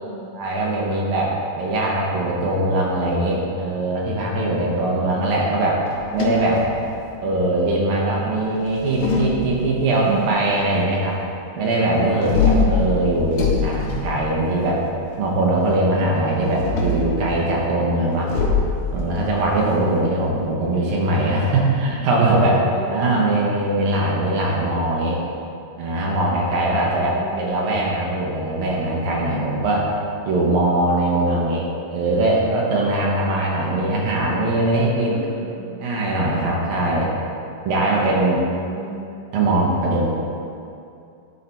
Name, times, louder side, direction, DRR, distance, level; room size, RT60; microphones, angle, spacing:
voice 1, 0.3-5.8 6.1-6.6 7.2-11.2 11.6-14.8 15.2-18.3 18.9-25.2 25.8-29.9 30.3-35.3 35.8-37.1 37.7-38.4 39.3-40.1, right 2 dB, 85° right, -3 dB, 1.9 m, -21 dB
voice 2, 4.2-5.4 6.3-6.6 12.1-12.3 19.2-19.5 22.3-23.2 26.1-26.4 26.9-27.8 31.3-31.4 32.7-33.0 34.7-35.7 36.3-36.6 37.8-39.1, right 1 dB, 50° right, -5 dB, 1.8 m, -36 dB
sound 1, 5.9-7.3 8.6-10.0 12.2-14.8 16.4-17.1 18.3-20.6, left 4 dB, 85° left, 1.9 m, -23 dB
11.0 x 4.1 x 4.3 m, 2.6 s
omnidirectional pair, 2.4 m